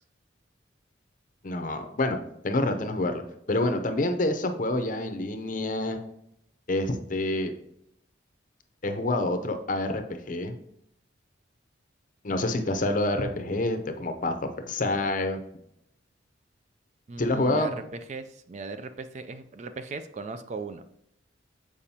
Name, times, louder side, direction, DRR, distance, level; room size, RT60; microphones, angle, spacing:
voice 1, 1.4-2.2 2.4-3.2 3.5-6.0 6.7-7.5 8.8-10.5 12.2-14.3 14.7-15.4 17.2-17.7, left 2 dB, 40° left, 7 dB, 0.6 m, -27 dB
voice 2, 17.1-17.7 18.1-20.8, right 4 dB, 35° right, 10 dB, 0.3 m, -38 dB
7.0 x 4.9 x 2.8 m, 0.74 s
head